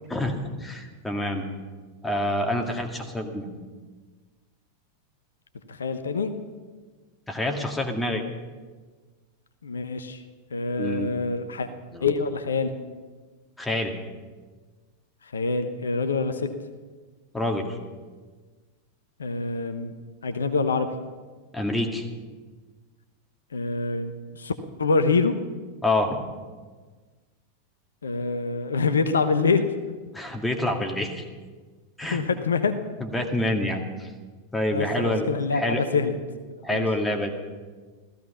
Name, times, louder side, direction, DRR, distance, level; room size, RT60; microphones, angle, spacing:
voice 1, 0.1-1.4 2.0-3.5 7.3-8.2 10.8-11.2 11.9-12.1 13.6-13.9 17.3-17.8 21.5-22.0 25.8-26.2 30.1-31.2 32.0-32.2 33.0-34.1 34.5-35.8 36.6-37.3, left 1 dB, 10° left, 3 dB, 2.1 m, -27 dB
voice 2, 5.8-6.3 9.6-10.2 10.5-11.7 12.0-12.7 15.3-16.5 19.2-19.9 20.2-20.9 23.5-24.5 24.8-25.4 28.0-29.7 32.1-32.7 34.7-36.2 36.7-36.9, left 4 dB, 75° left, 9 dB, 0.9 m, -25 dB
16.0 x 14.5 x 5.6 m, 1.4 s
figure-of-eight pair, 90°, 0 cm